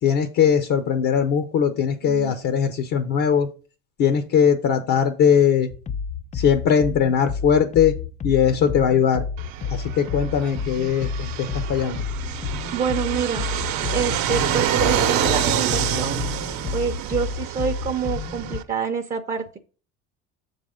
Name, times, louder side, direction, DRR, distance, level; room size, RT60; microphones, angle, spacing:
voice 1, 0.0-3.5 4.0-5.7 6.3-7.9 8.2-9.2 9.7-12.0, left 7 dB, 60° left, 8 dB, 0.9 m, -20 dB
voice 2, 2.0-2.3 12.7-13.4 13.9-16.2 16.7-19.4, right 6 dB, 25° right, 5 dB, 0.7 m, -27 dB
sound 1, 5.7-18.6, left 6 dB, 20° left, 0.4 m, -31 dB
Fixed-wing aircraft airplane, 9.4-18.6, right 9 dB, 60° right, 0.9 m, -27 dB
7.2 x 4.0 x 5.0 m, 0.37 s
supercardioid pair, 100°, 32 cm